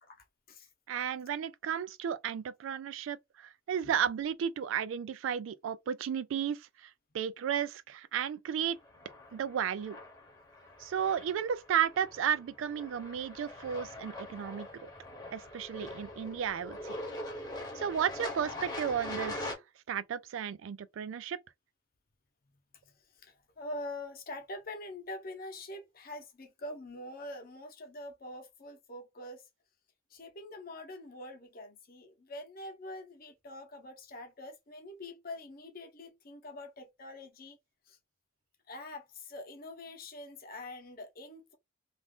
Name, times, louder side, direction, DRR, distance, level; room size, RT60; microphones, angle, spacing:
voice 1, 0.1-0.7 3.8-3.9 22.8-22.9 23.2-29.4 30.1-37.6 37.9-38.0 38.7-41.6, left 1 dB, 50° left, 0.8 m, -45 dB
voice 2, 0.9-6.7 7.1-8.8 9.3-10.0 10.8-14.7 15.3-17.0 17.8-19.6 19.9-21.4, right 8 dB, 75° right, 0.3 m, -33 dB
sound 1, 8.8-19.5, left 1 dB, 20° left, 0.8 m, -43 dB
2.5 x 2.4 x 3.4 m
head